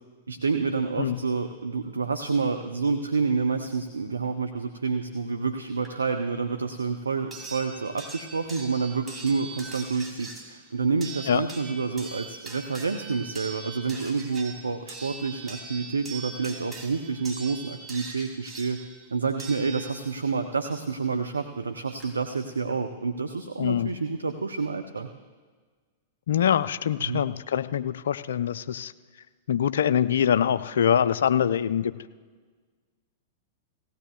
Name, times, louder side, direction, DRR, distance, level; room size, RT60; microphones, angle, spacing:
voice 1, 0.3-18.8 19.1-25.1 27.1-27.2, right 4 dB, 85° right, 7 dB, 0.6 m, -28 dB
sound 1, 5.8-5.9 7.3-20.3 21.6-21.7 22.0-22.1, right 3 dB, 15° right, 2.9 m, -42 dB
voice 2, 23.6-23.9 26.3-28.9 29.5-31.9, left 9 dB, 70° left, 13 dB, 0.5 m, -24 dB
18.0 x 16.0 x 2.3 m, 1.5 s
figure-of-eight pair, 100°, 0 cm